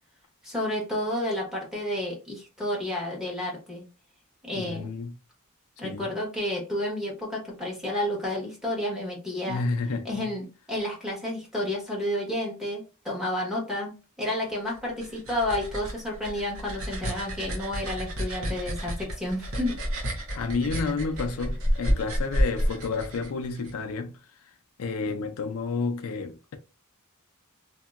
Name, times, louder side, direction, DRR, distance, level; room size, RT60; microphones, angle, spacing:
voice 1, 0.4-3.8 4.4-4.9 5.8-9.6 10.0-19.8, left 1 dB, ahead, 1.2 m, -31 dB
voice 2, 4.6-5.1 5.8-6.1 9.5-10.3 20.3-24.1 24.4-24.5 24.8-26.6, left 4 dB, 75° left, 0.4 m, -30 dB
sound 1, 14.8-23.7, equal, 65° right, 0.9 m, -30 dB
2.8 x 2.7 x 2.4 m
head